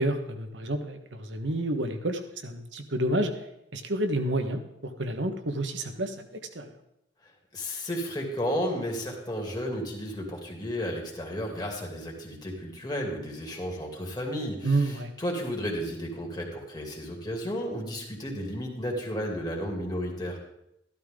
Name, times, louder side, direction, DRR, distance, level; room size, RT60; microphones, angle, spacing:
voice 1, 0.0-3.3 3.7-4.6 5.0-6.1 6.5-6.7 14.6-15.1, right 1 dB, 75° right, 6 dB, 1.4 m, -29 dB
voice 2, 7.5-20.4, equal, 20° left, 0 dB, 2.7 m, -33 dB
14.0 x 12.5 x 3.8 m, 0.82 s
head